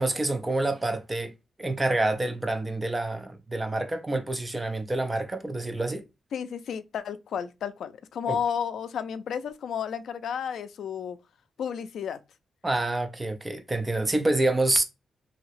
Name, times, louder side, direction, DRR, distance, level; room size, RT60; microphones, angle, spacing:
voice 1, 0.0-1.3 1.6-6.0 8.3-8.4 12.6-14.8, right 2 dB, 15° right, 0.4 m, -27 dB
voice 2, 6.3-11.2 11.6-12.2, left 8 dB, 70° left, 0.3 m, -32 dB
2.9 x 2.7 x 3.0 m
wide cardioid pair, 175°, 0 cm